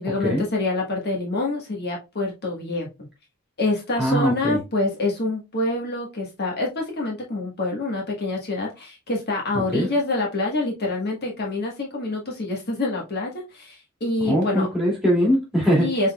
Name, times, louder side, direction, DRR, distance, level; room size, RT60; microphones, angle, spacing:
voice 1, 0.0-2.9 3.6-14.7 15.8-16.1, left 2 dB, 50° left, 1.4 m, -26 dB
voice 2, 4.0-4.6 9.7-9.9 14.2-15.9, equal, 5° right, 2.3 m, -21 dB
6.1 x 3.8 x 2.3 m
head